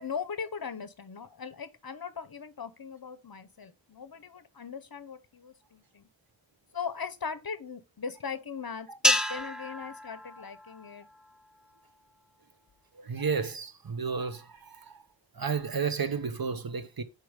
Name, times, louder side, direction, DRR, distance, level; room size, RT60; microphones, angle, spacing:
voice 1, 0.0-6.1 6.7-11.1, left 6 dB, 50° left, 0.7 m, -39 dB
sound 1, 9.0-11.5, left 1 dB, ahead, 0.6 m, -30 dB
voice 2, 13.0-15.0 15.4-17.0, right 5 dB, 50° right, 0.7 m, -32 dB
4.7 x 4.7 x 4.9 m
wide cardioid pair, 40°, 46 cm